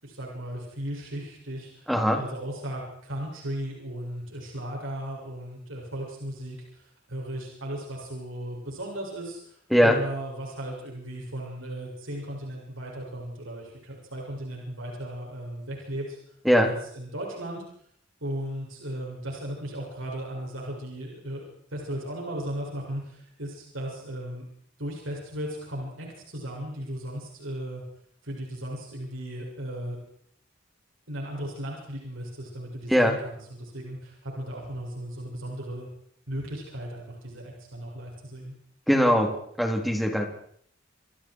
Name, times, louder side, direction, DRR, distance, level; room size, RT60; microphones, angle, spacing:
voice 1, 0.0-16.2 16.6-17.6 18.2-21.4 21.7-24.4 24.8-27.8 28.2-30.0 31.1-35.9 36.3-38.5, right 1 dB, 85° right, -2 dB, 7.4 m, -36 dB
voice 2, 1.9-2.2 9.7-10.0 16.4-16.7 32.9-33.2 38.9-40.2, equal, ahead, 2 dB, 3.9 m, -21 dB
29.0 x 25.0 x 4.9 m, 0.65 s
head